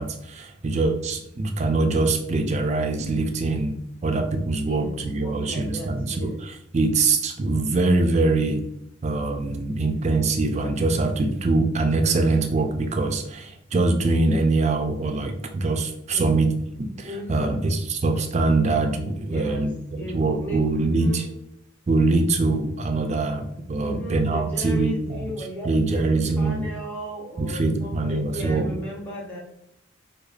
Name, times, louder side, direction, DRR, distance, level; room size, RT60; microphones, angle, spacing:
voice 1, 0.0-8.6 9.0-16.5 16.8-21.3 21.9-26.7 27.4-28.7, right 3 dB, 35° right, 5 dB, 0.4 m, -23 dB
voice 2, 4.7-6.4 16.1-16.4 17.0-17.6 19.2-19.7 20.0-21.3 23.8-29.4, equal, 10° left, -5 dB, 0.6 m, -36 dB
4.8 x 2.3 x 2.3 m, 0.77 s
head